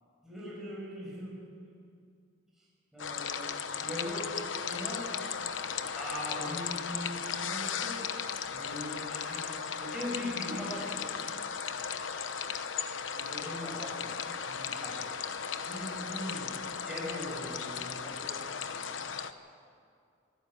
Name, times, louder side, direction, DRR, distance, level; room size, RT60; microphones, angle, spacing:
voice 1, 0.2-1.6 2.9-5.3 5.9-8.2 8.5-11.2 13.1-15.2 15.6-18.4, left 1 dB, 5° right, -5 dB, 6.1 m, -41 dB
sound 1, 3.0-19.3, left 7 dB, 90° left, 1.0 m, -36 dB
24.0 x 14.5 x 9.0 m, 2.3 s
head